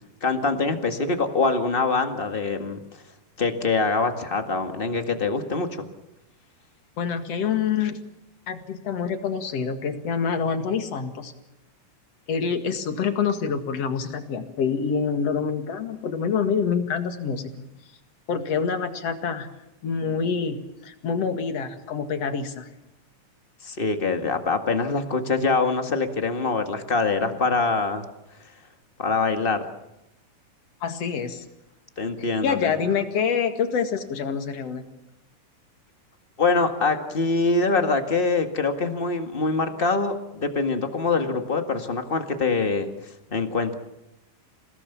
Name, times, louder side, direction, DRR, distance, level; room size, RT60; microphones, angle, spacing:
voice 1, 0.2-2.8 3.4-5.8 23.6-28.0 29.0-29.6 32.0-32.7 36.4-42.9 43.3-43.7, left 3 dB, 30° left, 6 dB, 1.1 m, -24 dB
voice 2, 7.0-8.0 8.5-11.3 12.3-17.5 18.3-19.5 19.8-22.7 30.8-31.4 32.2-34.9, left 6 dB, 50° left, 7 dB, 2.7 m, -26 dB
28.5 x 18.5 x 7.2 m, 0.91 s
omnidirectional pair, 4.0 m